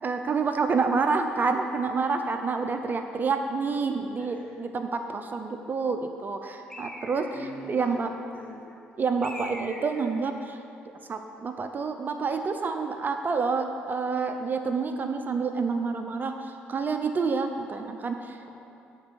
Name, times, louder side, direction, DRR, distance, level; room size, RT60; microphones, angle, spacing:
voice 1, 0.0-7.3 7.7-8.1 9.0-10.6 11.1-18.4, right 4 dB, 40° right, 6 dB, 0.6 m, -28 dB
voice 2, 4.2-4.6 7.1-8.0 8.3-8.8, equal, 35° left, -3 dB, 2.2 m, -43 dB
Bird, 6.7-7.6 9.2-10.1, equal, 10° left, 1.3 m, -41 dB
8.0 x 4.4 x 6.9 m, 2.6 s
supercardioid pair, 60°, 5 cm